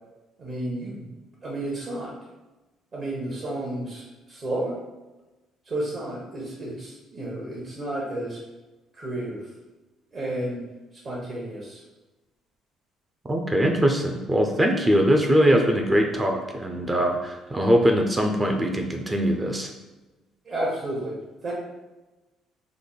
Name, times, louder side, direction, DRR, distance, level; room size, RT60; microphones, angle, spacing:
voice 1, 0.4-1.0 1.4-2.1 2.9-4.7 5.7-8.4 8.9-9.4 10.1-10.6 11.0-11.8 20.4-21.1 21.4-21.5, right 1 dB, 45° right, -5 dB, 1.0 m, -31 dB
voice 2, 13.3-19.7, equal, 20° right, 3 dB, 0.5 m, -22 dB
3.4 x 2.1 x 3.9 m, 1.1 s
cardioid pair, 90°, 0 cm